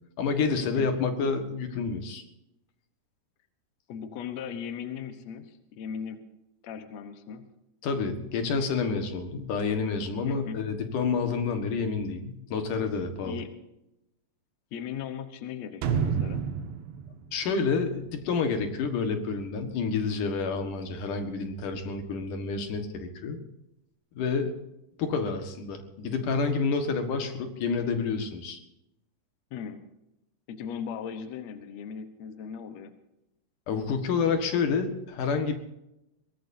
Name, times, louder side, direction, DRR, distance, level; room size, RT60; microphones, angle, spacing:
voice 1, 0.2-2.2 7.8-13.4 17.3-23.4 24.1-24.5 25.0-28.6 33.7-35.6, left 5 dB, 60° left, 6 dB, 2.8 m, -29 dB
voice 2, 3.9-6.2 6.6-7.4 10.2-10.6 13.2-13.5 14.7-16.5 29.5-29.8 30.5-32.9, left 7 dB, 80° left, 8 dB, 1.5 m, -38 dB
sound 1, 15.8-18.6 18.9-19.0, right 7 dB, 85° right, 3.5 m, -30 dB
22.5 x 18.5 x 2.8 m, 0.87 s
omnidirectional pair, 4.9 m